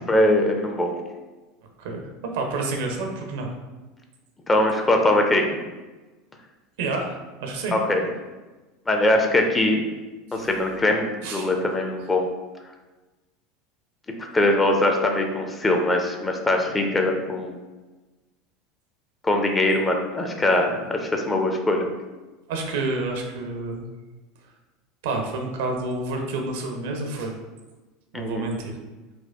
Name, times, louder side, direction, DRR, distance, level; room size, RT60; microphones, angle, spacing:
voice 1, 0.1-0.9 4.5-5.4 7.7-8.0 8.9-9.8 10.3-12.3 14.3-17.6 19.2-21.9 28.1-28.5, left 1 dB, 20° left, 3 dB, 0.5 m, -22 dB
voice 2, 2.3-3.5 6.8-7.8 10.3-10.5 11.2-11.5 12.0-12.1 22.5-23.9 25.0-27.3 28.1-28.8, right 3 dB, 60° right, 2 dB, 0.5 m, -29 dB
4.1 x 2.2 x 2.3 m, 1.2 s
figure-of-eight pair, 75°, 0 cm